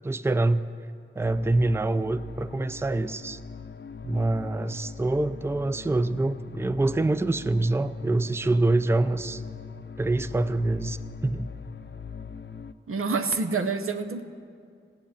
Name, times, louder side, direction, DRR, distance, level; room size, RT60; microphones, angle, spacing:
voice 1, 0.0-0.7 1.2-3.4 4.0-9.4 10.0-11.5, right 2 dB, 10° right, 13 dB, 0.4 m, -25 dB
sound 1, 1.2-12.7, left 6 dB, 55° left, 0.5 m, -42 dB
voice 2, 12.9-14.2, right 4 dB, 85° right, 7 dB, 0.7 m, -27 dB
16.5 x 6.4 x 9.9 m, 2.3 s
wide cardioid pair, 45°, 21 cm